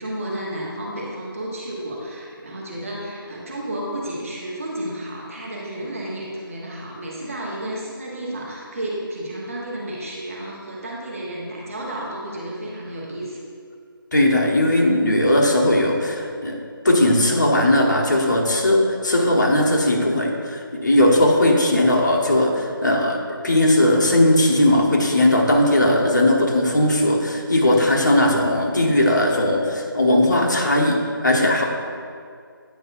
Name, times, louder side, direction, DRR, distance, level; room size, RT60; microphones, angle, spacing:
voice 1, 0.0-13.4, right 1 dB, 35° right, -4 dB, 1.2 m, -32 dB
voice 2, 14.1-16.5 16.8-31.6, left 1 dB, 50° left, -1 dB, 1.2 m, -18 dB
9.1 x 5.9 x 2.6 m, 2.2 s
figure-of-eight pair, 160°, 12 cm